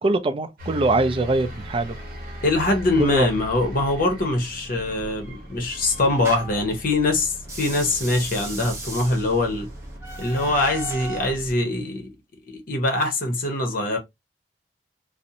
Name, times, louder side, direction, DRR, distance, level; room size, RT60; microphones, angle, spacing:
voice 1, 0.0-1.9 3.0-3.3, right 2 dB, 30° right, 0.4 m, -22 dB
sound 1, 0.6-11.5, equal, 55° right, 0.8 m, -39 dB
voice 2, 2.4-9.7 10.2-12.0 12.5-14.0, left 2 dB, 55° left, 0.8 m, -23 dB
sound 2, 4.9-6.7 7.4-11.4, right 3 dB, 15° right, 0.8 m, -37 dB
2.5 x 2.0 x 2.7 m
head